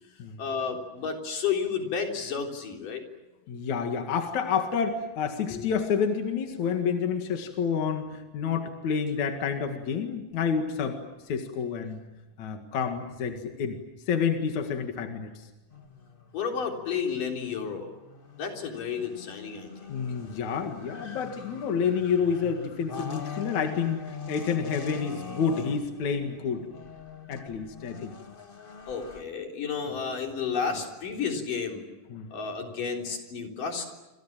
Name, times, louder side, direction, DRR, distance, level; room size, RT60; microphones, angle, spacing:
voice 1, 0.4-3.0 5.5-5.7 16.3-17.9 18.4-19.9 28.9-31.9 32.3-33.9, left 6 dB, 90° left, 2 dB, 5.3 m, -31 dB
voice 2, 3.5-11.0 11.3-12.0 12.4-13.8 14.1-15.5 19.9-26.6 27.3-28.1 32.1-32.3, left 6 dB, 65° left, 5 dB, 3.2 m, -29 dB
sound 1, 15.7-29.2, left 6 dB, 35° left, 0.9 m, -43 dB
28.0 x 27.5 x 7.5 m, 1.1 s
omnidirectional pair, 3.6 m